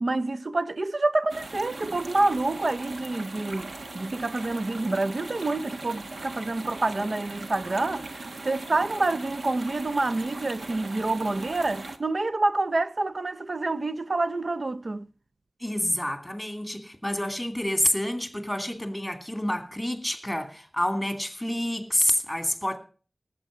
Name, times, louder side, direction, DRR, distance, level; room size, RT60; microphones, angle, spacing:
voice 1, 0.0-15.1, right 2 dB, 55° right, 0.6 m, -27 dB
sound 1, 1.3-12.0, right 2 dB, 80° right, 1.3 m, -39 dB
voice 2, 15.6-22.8, left 1 dB, 5° left, 2.6 m, -28 dB
18.5 x 7.8 x 4.9 m
wide cardioid pair, 70°, 0 cm